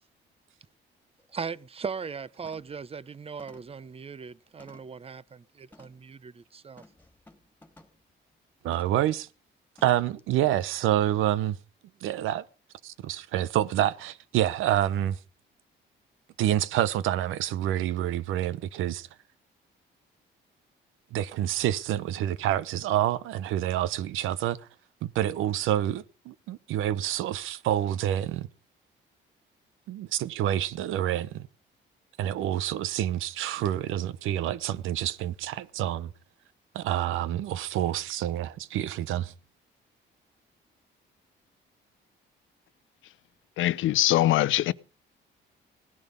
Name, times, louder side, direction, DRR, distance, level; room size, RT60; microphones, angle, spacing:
sound 1, 0.6-0.7 1.2-1.4 1.8-2.1 2.5-2.9 3.4-5.1 5.7-6.1 6.8-8.0 8.7-9.1 9.8-10.2 10.6-10.7, left 2 dB, 10° left, 2.4 m, -56 dB
voice 1, 1.3-6.8, right 5 dB, 30° right, 0.7 m, -38 dB
voice 2, 8.6-9.3 9.8-11.6 12.0-12.4 12.8-15.2 16.4-19.1 21.1-24.6 25.0-28.5 29.9-31.5 32.2-36.1 36.7-39.3, right 12 dB, 90° right, 0.8 m, -28 dB
voice 3, 43.6-44.7, left 15 dB, 80° left, 0.7 m, -22 dB
18.0 x 11.0 x 5.4 m
cardioid pair, 90°, 20 cm